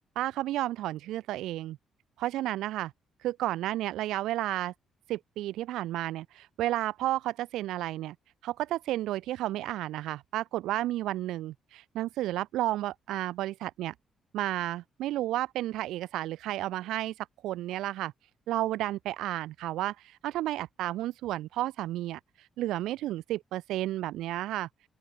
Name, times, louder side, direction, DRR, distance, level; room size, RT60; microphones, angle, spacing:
voice 1, 0.2-1.8 2.2-2.9 3.2-4.7 5.1-8.1 8.4-13.9 14.3-18.1 18.5-24.7, right 15 dB, 90° right, 5.5 m, -32 dB
open air
cardioid pair, 90°, 0 cm